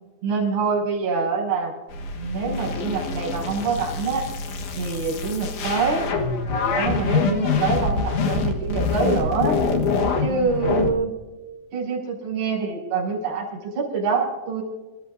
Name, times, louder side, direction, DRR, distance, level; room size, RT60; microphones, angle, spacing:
voice 1, 0.2-1.7 2.2-4.2 4.8-6.1 6.7-9.6 10.2-11.1 11.7-14.6, right 5 dB, 55° right, -3 dB, 7.8 m, -25 dB
sound 1, 1.9-10.9, left 4 dB, 70° left, 1.8 m, -25 dB
29.5 x 13.5 x 2.6 m, 1.2 s
omnidirectional pair, 5.7 m